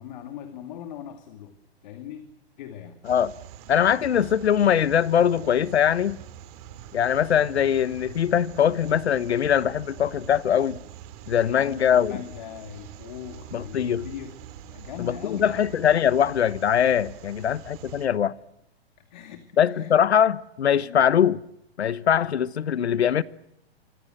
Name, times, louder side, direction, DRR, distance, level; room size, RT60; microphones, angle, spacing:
voice 1, 0.0-3.1 3.9-4.2 11.3-15.7 17.9-18.3 19.0-19.9 20.8-21.1, left 10 dB, 45° left, 2.5 m, -41 dB
sound 1, 3.0-18.1, right 11 dB, 35° right, 2.9 m, -44 dB
voice 2, 3.7-6.2 6.9-10.8 11.3-12.1 13.5-14.1 15.4-18.3 19.6-21.4 21.8-23.2, left 9 dB, 85° left, 1.2 m, -22 dB
27.0 x 24.5 x 7.9 m
hypercardioid pair, 150°, 32 cm